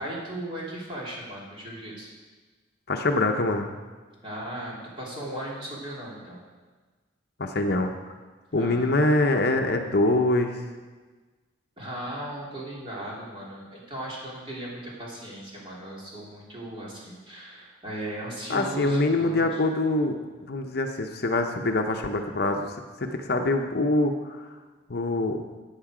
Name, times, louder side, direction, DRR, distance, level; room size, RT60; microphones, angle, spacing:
voice 1, 0.0-2.1 4.2-6.4 8.5-8.9 11.8-19.6, right 1 dB, 25° right, -5 dB, 3.0 m, -37 dB
voice 2, 2.9-3.8 7.4-7.9 8.5-10.6 18.5-24.5 24.9-25.4, left 2 dB, 50° left, 4 dB, 0.8 m, -24 dB
13.0 x 9.0 x 5.0 m, 1.4 s
head